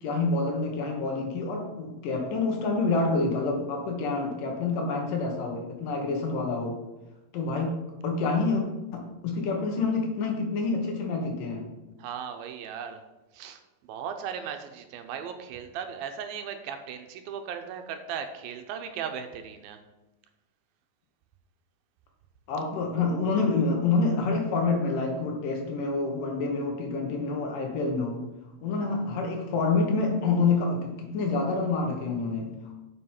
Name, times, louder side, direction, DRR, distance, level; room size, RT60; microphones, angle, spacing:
voice 1, 0.0-6.8 7.3-7.7 8.0-8.6 8.9-11.7 22.5-28.2 28.6-32.7, left 3 dB, 65° left, 2 dB, 2.7 m, -27 dB
voice 2, 12.0-13.0 13.3-19.8 22.8-22.9, right 7 dB, 80° right, 7 dB, 2.5 m, -37 dB
7.8 x 6.1 x 5.7 m, 1.0 s
omnidirectional pair, 4.4 m